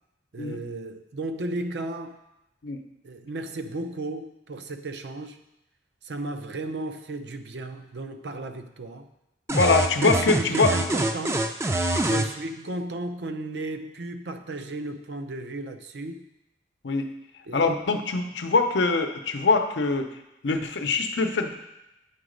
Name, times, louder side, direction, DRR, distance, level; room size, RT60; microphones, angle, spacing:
voice 1, 0.3-2.2 3.0-5.4 6.0-9.1 10.0-11.5 12.1-16.3 17.5-17.7, right 2 dB, 75° right, 8 dB, 0.5 m, -34 dB
voice 2, 9.5-10.7 12.1-12.2 16.8-17.1 17.5-20.1 20.4-21.5, left 3 dB, 90° left, 6 dB, 0.7 m, -23 dB
sound 1, 9.5-12.3, right 1 dB, 15° right, 0.4 m, -25 dB
8.3 x 4.0 x 5.1 m, 0.92 s
head